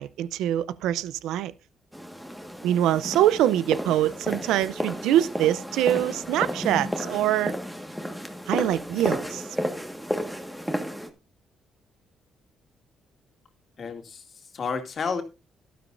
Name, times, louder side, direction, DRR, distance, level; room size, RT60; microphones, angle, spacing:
voice 1, 0.0-1.5 2.6-7.5 8.5-9.4, right 12 dB, 90° right, 0.5 m, -24 dB
sound 1, 1.9-11.1, equal, ahead, 1.6 m, -32 dB
voice 2, 13.8-15.2, left 5 dB, 50° left, 2.3 m, -31 dB
12.5 x 12.0 x 2.6 m
cardioid pair, 90°, 0 cm